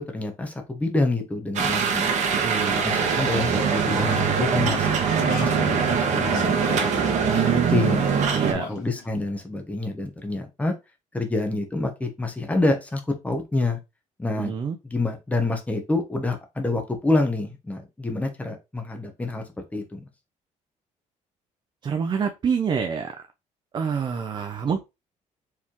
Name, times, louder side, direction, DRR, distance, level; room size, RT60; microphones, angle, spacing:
voice 1, 0.0-2.1 2.7-4.9 5.2-7.5 7.7-8.0 8.7-10.7 11.1-13.8 14.2-14.5 14.8-19.4 19.7-20.1, left 2 dB, 10° left, 4 dB, 1.0 m, -27 dB
sound 1, 1.5-8.5, right 6 dB, 60° right, 1.3 m, -22 dB
voice 2, 2.3-2.8 8.3-8.7 14.4-14.8 21.8-23.1 23.7-24.8, right 6 dB, 35° right, 6 dB, 0.5 m, -27 dB
sound 2, 3.8-9.2, left 6 dB, 65° left, 1.9 m, -39 dB
4.5 x 3.5 x 3.0 m, 0.25 s
cardioid pair, 140°, 13 cm